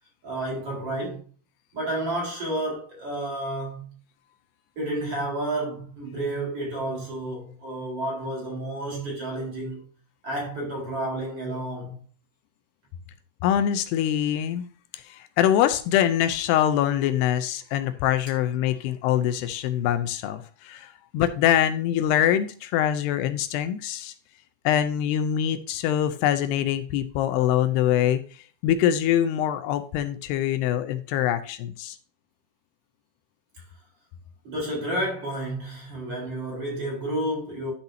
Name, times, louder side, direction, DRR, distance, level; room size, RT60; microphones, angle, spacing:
voice 1, 0.2-1.2 1.7-3.9 4.8-9.8 10.2-12.0 34.4-37.7, right 1 dB, 35° right, 4.6 m, -30 dB
voice 2, 13.4-14.7 15.1-24.1 24.7-28.2 28.6-32.0, left 10 dB, 80° left, 2.6 m, -24 dB
11.5 x 6.6 x 2.8 m
omnidirectional pair, 4.9 m